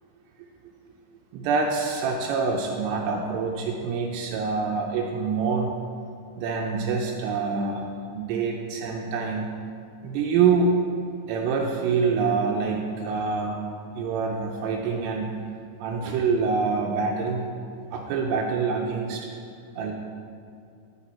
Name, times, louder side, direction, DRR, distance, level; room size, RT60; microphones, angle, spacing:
voice 1, 1.3-5.7 6.4-9.5 10.0-10.8 11.3-13.6 14.0-15.3 15.8-17.5 17.9-19.3 19.8-19.9, right 5 dB, 85° right, 0 dB, 2.7 m, -26 dB
13.0 x 5.3 x 4.3 m, 2.5 s
omnidirectional pair, 5.0 m